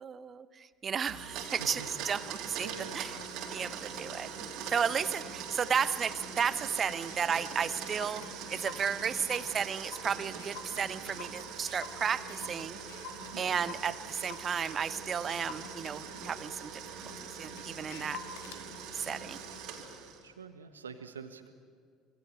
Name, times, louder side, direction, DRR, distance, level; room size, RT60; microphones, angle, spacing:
voice 1, 0.0-3.2 3.5-4.3 4.7-8.2 8.5-12.8 13.4-18.2 18.9-19.4, right 7 dB, 35° right, 15 dB, 0.9 m, -33 dB
Domestic sounds home sounds, 1.1-20.3, right 6 dB, 55° right, 3.2 m, -42 dB
voice 2, 2.4-3.0 13.3-13.5 20.2-21.5, right 6 dB, 80° right, 9 dB, 1.4 m, -46 dB
Clock, 4.1-4.2 4.8-5.0 5.6-5.7 5.9-6.0 6.4-6.5 6.8-14.7 15.2-18.6, left 6 dB, 60° left, 1.6 m, -49 dB
26.0 x 25.0 x 6.7 m, 2.1 s
figure-of-eight pair, 60°, 0 cm